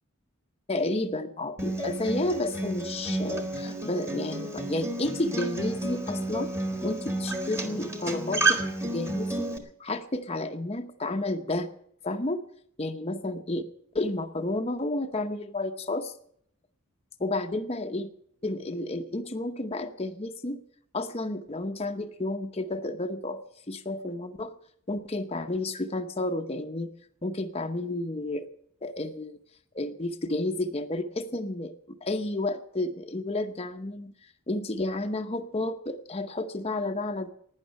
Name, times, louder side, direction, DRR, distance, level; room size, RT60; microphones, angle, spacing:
voice 1, 0.7-6.5 6.8-11.7 12.0-12.4 12.8-13.6 13.9-16.1 17.2-18.1 18.4-20.6 20.9-23.4 23.7-24.5 24.9-26.9 27.2-28.5 28.8-29.4 29.7-31.7 32.0-34.1 34.5-37.3, left 2 dB, 30° left, 6 dB, 0.8 m, -31 dB
Acoustic guitar, 1.6-9.6, right 2 dB, 15° right, 1.5 m, -31 dB
12.0 x 9.9 x 9.4 m, 0.68 s
head